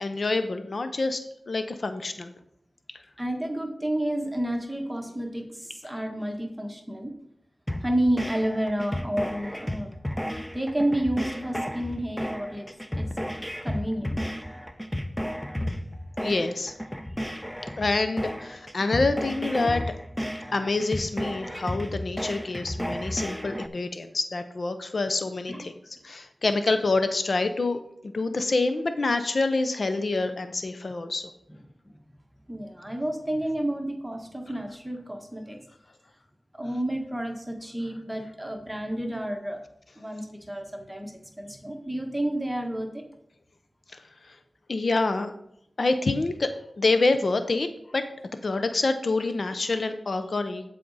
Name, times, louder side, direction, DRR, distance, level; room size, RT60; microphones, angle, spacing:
voice 1, 0.0-2.3 5.8-5.9 16.2-16.7 17.8-19.9 20.5-27.8 28.0-31.3 43.9-44.4 44.7-45.3 45.8-48.1 48.4-50.6, left 3 dB, 65° left, 9 dB, 0.6 m, -27 dB
voice 2, 3.2-7.1 7.8-9.9 10.5-12.7 12.9-13.1 13.6-14.2 25.5-25.6 32.5-35.6 36.5-39.6 40.0-43.0, right 1 dB, 10° right, 3 dB, 1.3 m, -30 dB
sound 1, 7.7-23.7, equal, 5° left, 0.7 m, -33 dB
12.5 x 5.0 x 4.0 m, 0.74 s
cardioid pair, 50°, 0 cm